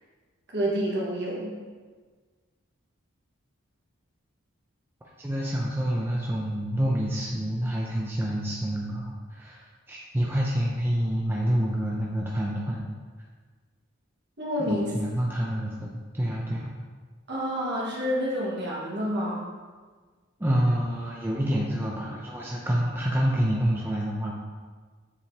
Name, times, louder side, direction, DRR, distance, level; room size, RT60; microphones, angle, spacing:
voice 1, 0.5-1.5 14.4-14.9 17.3-19.4, equal, 55° right, -5 dB, 1.6 m, -28 dB
voice 2, 5.2-12.8 14.6-16.7 20.4-24.3, equal, 10° right, -4 dB, 0.5 m, -27 dB
7.2 x 4.9 x 2.8 m, 1.5 s
head